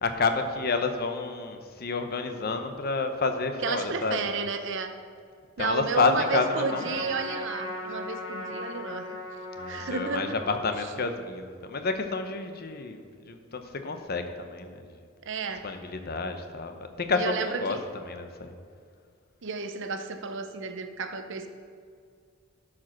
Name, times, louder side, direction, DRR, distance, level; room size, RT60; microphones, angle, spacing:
voice 1, 0.0-4.3 5.6-7.0 9.6-13.0 13.2-14.8 15.6-17.8 18.1-18.5, left 3 dB, 50° left, 7 dB, 0.8 m, -29 dB
voice 2, 3.6-4.9 5.6-9.2 9.7-10.4 15.3-15.7 17.1-17.9 19.4-21.5, right 4 dB, 60° right, 8 dB, 0.7 m, -32 dB
Trumpet, 6.0-10.6, left 1 dB, 85° left, 2.5 m, -38 dB
12.0 x 5.0 x 5.9 m, 2.1 s
head